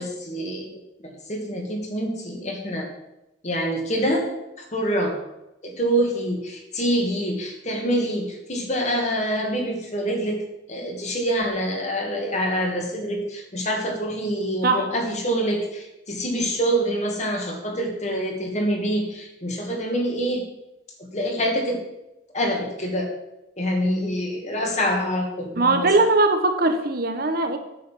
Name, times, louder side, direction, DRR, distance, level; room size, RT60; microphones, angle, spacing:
voice 1, 0.0-2.9 3.4-4.3 4.7-5.2 5.6-10.4 10.7-20.4 21.0-21.8 22.3-23.1 23.6-26.1, equal, 35° left, 1 dB, 2.1 m, -26 dB
voice 2, 25.6-27.6, right 2 dB, 50° right, 7 dB, 0.9 m, -20 dB
9.2 x 6.4 x 7.5 m, 0.92 s
head